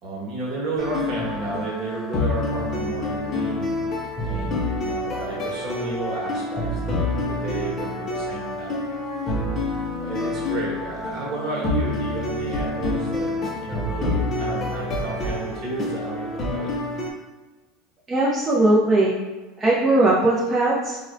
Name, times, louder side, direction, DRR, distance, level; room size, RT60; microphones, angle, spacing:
voice 1, 0.0-3.7 4.2-9.0 10.0-13.3 13.6-16.7, right 3 dB, 45° right, -4 dB, 1.1 m, -32 dB
sound 1, 0.8-17.1, left 2 dB, 30° left, 0.5 m, -27 dB
voice 2, 18.1-19.2 19.6-21.0, right 2 dB, 20° right, -6 dB, 0.4 m, -19 dB
3.7 x 2.1 x 2.5 m, 1.2 s
supercardioid pair, 130°, 0 cm